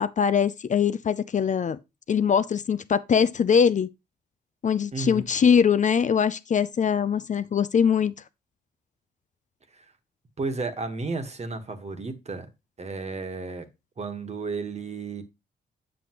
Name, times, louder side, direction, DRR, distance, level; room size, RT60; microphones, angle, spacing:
voice 1, 0.0-1.8 2.1-3.9 4.6-8.1, left 7 dB, 45° left, 0.5 m, -22 dB
voice 2, 4.9-5.3 9.8-9.9 10.4-12.5 12.8-13.7 14.0-15.2, right 3 dB, 35° right, 1.4 m, -33 dB
7.7 x 6.9 x 3.0 m
cardioid pair, 70°, 18 cm